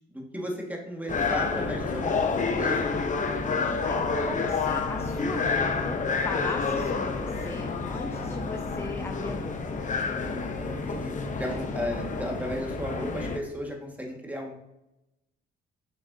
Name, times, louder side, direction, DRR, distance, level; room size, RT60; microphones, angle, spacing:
voice 1, 0.0-2.8 10.2-11.1 11.4-14.6, equal, 10° right, 0 dB, 1.7 m, -35 dB
sound 1, 1.1-13.4, left 4 dB, 40° left, 0.8 m, -29 dB
voice 2, 4.2-9.8, left 3 dB, 15° left, 6 dB, 0.5 m, -38 dB
7.4 x 5.9 x 2.7 m, 0.90 s
cardioid pair, 90°, 20 cm